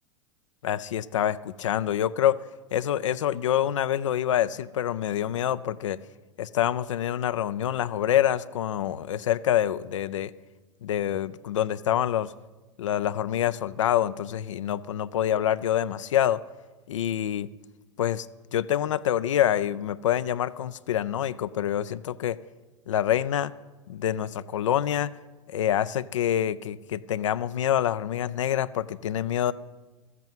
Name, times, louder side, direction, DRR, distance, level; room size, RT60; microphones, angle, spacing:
voice 1, 0.6-2.4 2.7-6.0 6.4-10.3 10.8-12.3 12.8-16.4 16.9-17.5 18.0-18.3 18.5-22.4 22.9-23.5 23.9-25.1 25.5-29.5, left 11 dB, 80° left, 12 dB, 0.5 m, -26 dB
13.0 x 8.2 x 9.0 m, 1.2 s
hypercardioid pair, 105°, 16 cm